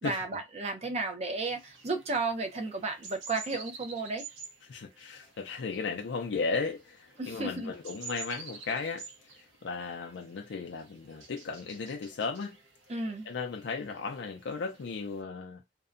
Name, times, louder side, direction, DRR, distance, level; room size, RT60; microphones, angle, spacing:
voice 1, 0.0-4.2 7.2-7.7 12.9-13.3, right 3 dB, 35° right, 0.5 m, -33 dB
sound 1, 1.4-15.2, right 4 dB, 80° right, 0.8 m, -50 dB
voice 2, 4.7-9.0 9.3-12.6 13.3-15.6, left 4 dB, 70° left, 0.4 m, -35 dB
2.6 x 2.1 x 2.4 m
head